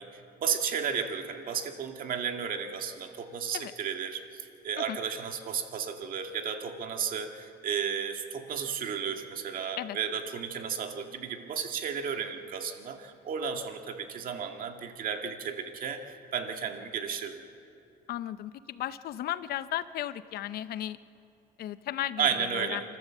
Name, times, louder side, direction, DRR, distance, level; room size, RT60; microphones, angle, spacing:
voice 1, 0.0-17.4 22.2-22.8, right 7 dB, 55° right, 4 dB, 2.0 m, -33 dB
voice 2, 18.1-21.0 21.6-22.8, left 12 dB, 65° left, 14 dB, 0.7 m, -35 dB
29.0 x 13.5 x 7.5 m, 2.6 s
cardioid pair, 110°, 17 cm